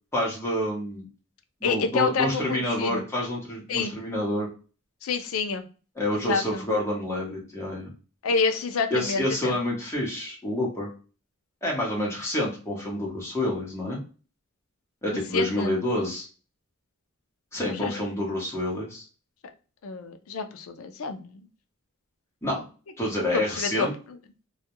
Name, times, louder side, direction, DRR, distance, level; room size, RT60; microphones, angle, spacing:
voice 1, 0.1-1.1 1.6-4.5 6.0-7.9 8.9-10.9 11.6-14.0 15.0-16.3 17.5-19.0 22.4-22.6 23.0-23.9, left 1 dB, 10° left, -4 dB, 0.9 m, -28 dB
voice 2, 1.6-3.0 3.7-3.9 5.0-5.6 6.1-6.6 8.2-9.6 15.3-15.8 17.7-17.9 19.8-21.4 23.3-23.9, left 4 dB, 70° left, 7 dB, 0.4 m, -28 dB
2.3 x 2.2 x 2.8 m, 0.36 s
head